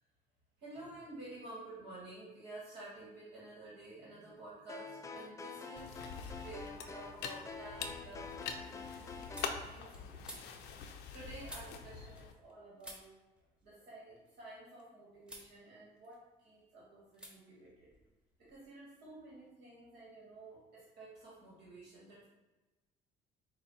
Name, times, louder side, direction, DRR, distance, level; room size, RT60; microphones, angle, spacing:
voice 1, 0.6-6.1 6.4-13.1 13.6-17.9 18.4-22.3, right 2 dB, 80° right, -6 dB, 1.4 m, -52 dB
sound 1, 4.7-9.6, left 4 dB, 20° left, 0.4 m, -47 dB
sound 2, 5.8-12.3, left 6 dB, 85° left, 0.5 m, -45 dB
sound 3, 9.3-12.5 12.8-14.8 15.2-15.5 15.9-16.6 17.1-17.3 17.6-18.7, equal, 5° right, 0.9 m, -55 dB
5.0 x 2.2 x 4.0 m, 1.1 s
cardioid pair, 110°, 17 cm